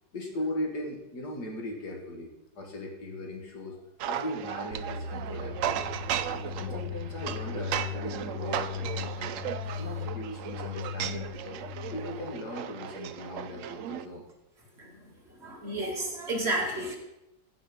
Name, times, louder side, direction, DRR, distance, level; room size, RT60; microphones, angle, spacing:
voice 1, 0.1-3.8 4.1-5.9 6.6-9.3 9.8-11.6 11.9-14.3, left 1 dB, 60° left, 1 dB, 2.5 m, -38 dB
sound 1, 4.0-14.0, right 10 dB, 80° right, 0.7 m, -36 dB
sound 2, 4.7-12.5, left 6 dB, 60° right, 2.4 m, -38 dB
voice 2, 15.4-16.9, right 1 dB, 35° right, 0 dB, 2.3 m, -31 dB
15.5 x 5.5 x 5.3 m, 0.89 s
omnidirectional pair, 1.9 m